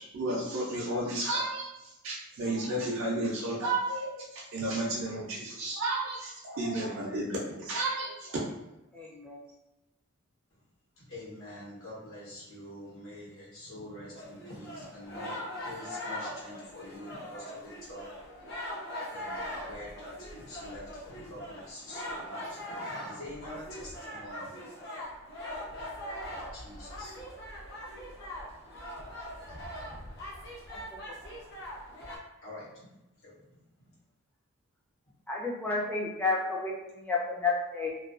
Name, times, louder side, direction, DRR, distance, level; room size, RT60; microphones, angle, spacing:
voice 1, 0.0-8.4, right 2 dB, 60° right, -5 dB, 0.4 m, -32 dB
voice 2, 8.9-9.4 30.7-31.4 35.3-38.0, left 3 dB, 5° left, -3 dB, 0.3 m, -32 dB
voice 3, 11.0-18.1 19.1-24.5 26.2-27.2 32.4-32.9 33.2-33.4 33.8-33.9, left 1 dB, 75° left, -6 dB, 1.0 m, -46 dB
sound 1, 14.1-32.2, equal, 50° left, 0.7 m, -41 dB
2.3 x 2.2 x 2.4 m, 0.96 s
head